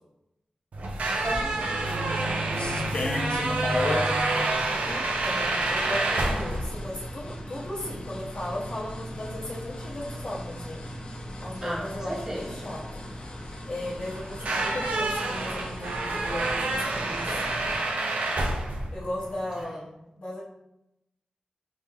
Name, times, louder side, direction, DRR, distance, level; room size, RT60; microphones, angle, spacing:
sound 1, 0.7-19.6, right 2 dB, 80° right, 0.5 m, -29 dB
sound 2, 1.2-17.8, left 1 dB, 50° left, 0.6 m, -37 dB
voice 1, 1.2-4.1 11.6-12.6 19.6-19.9, right 1 dB, 20° right, -3 dB, 0.7 m, -37 dB
voice 2, 4.9-10.8 11.4-12.8 13.7-17.4 18.9-19.8 20.2-20.4, left 1 dB, 65° left, -11 dB, 1.0 m, -36 dB
5.0 x 2.2 x 3.3 m, 0.90 s
wide cardioid pair, 145°, 2 cm